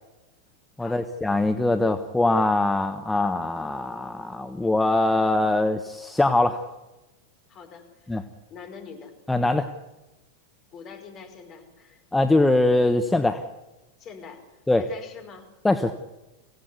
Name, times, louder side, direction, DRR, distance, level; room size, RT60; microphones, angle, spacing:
voice 1, 0.8-6.6 8.1-8.2 9.3-9.7 12.1-13.4 14.7-14.8 15.6-15.9, left 2 dB, 5° left, 7 dB, 1.2 m, -22 dB
voice 2, 7.5-9.1 10.7-12.0 14.0-14.4 14.8-15.5, left 5 dB, 35° left, 5 dB, 4.9 m, -44 dB
25.0 x 17.0 x 8.3 m, 1.0 s
figure-of-eight pair, 90°, 0 cm